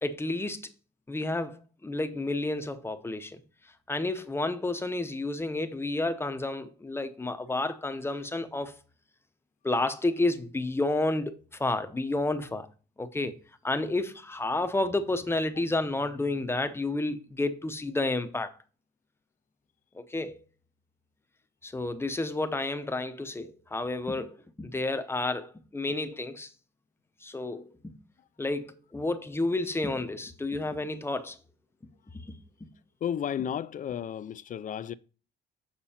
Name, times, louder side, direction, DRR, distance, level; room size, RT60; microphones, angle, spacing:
voice 1, 0.0-0.7 1.1-3.4 3.9-8.8 9.6-12.7 13.0-13.4 13.6-18.5 19.9-20.4 21.6-26.5 27.2-28.0 28.4-31.4 32.1-32.7, left 2 dB, 10° left, 0.8 m, -31 dB
voice 2, 33.0-34.9, left 9 dB, 40° left, 0.5 m, -33 dB
7.3 x 6.0 x 4.3 m
cardioid pair, 125°, 20 cm